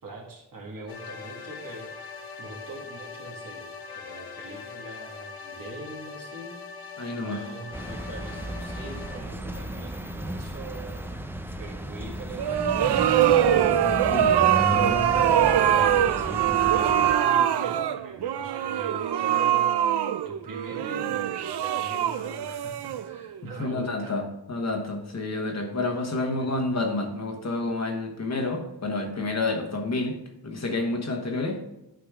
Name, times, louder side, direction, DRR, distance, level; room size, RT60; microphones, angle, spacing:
voice 1, 0.0-3.7 3.9-6.6 7.2-11.1 11.6-13.6 14.3-15.4 16.2-24.3 26.4-26.7, right 2 dB, 55° right, 0 dB, 1.9 m, -43 dB
sound 1, 0.9-9.2, left 5 dB, 70° left, 1.0 m, -41 dB
voice 2, 7.0-7.4 14.1-14.4 14.8-15.0 23.6-30.2 30.4-31.6, left 2 dB, 40° left, 3 dB, 1.3 m, -29 dB
sound 2, 7.7-17.1, right 1 dB, 5° right, 0.5 m, -34 dB
sound 3, 12.4-23.4, right 10 dB, 80° right, 0.5 m, -23 dB
11.5 x 5.1 x 3.6 m, 0.90 s
wide cardioid pair, 175°, 40 cm